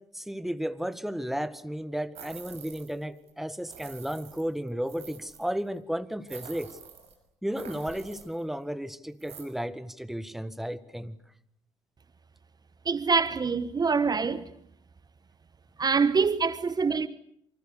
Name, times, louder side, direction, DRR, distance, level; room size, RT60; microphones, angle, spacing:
voice 1, 0.0-6.7 7.4-11.2, equal, ahead, 1.7 m, -33 dB
sound 1, 2.2-3.0 3.3-3.4 3.7-5.5 6.3-7.2 7.5-8.4 9.2-9.4, right 7 dB, 55° right, 6.0 m, -47 dB
voice 2, 12.8-14.5 15.8-17.1, right 5 dB, 30° right, 1.2 m, -25 dB
28.0 x 25.0 x 6.7 m
hypercardioid pair, 50°, 13 cm